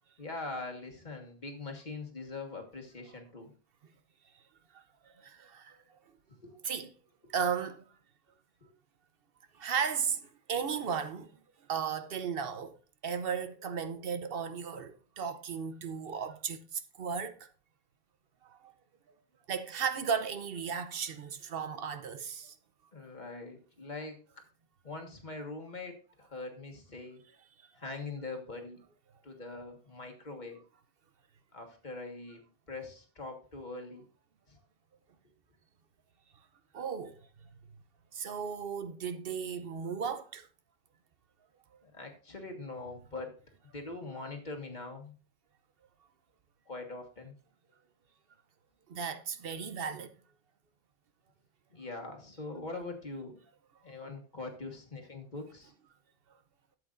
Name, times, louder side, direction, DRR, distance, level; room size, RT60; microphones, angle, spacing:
voice 1, 0.2-3.5 6.4-6.5 8.6-8.7 22.9-24.4 24.8-27.2 27.7-28.8 29.2-30.6 31.5-32.4 32.7-34.1 34.5-34.6 41.8-43.4 43.6-45.1 46.7-47.3 51.7-53.4 53.8-55.7, left 3 dB, 45° left, 1.7 m, -42 dB
voice 2, 4.7-5.8 6.6-6.9 7.3-7.8 9.5-11.4 11.7-12.8 13.0-17.5 18.4-18.7 19.5-22.5 36.7-37.2 38.1-40.5 48.9-50.1, right 6 dB, 65° right, 0.9 m, -35 dB
12.5 x 7.7 x 2.5 m
omnidirectional pair, 1.0 m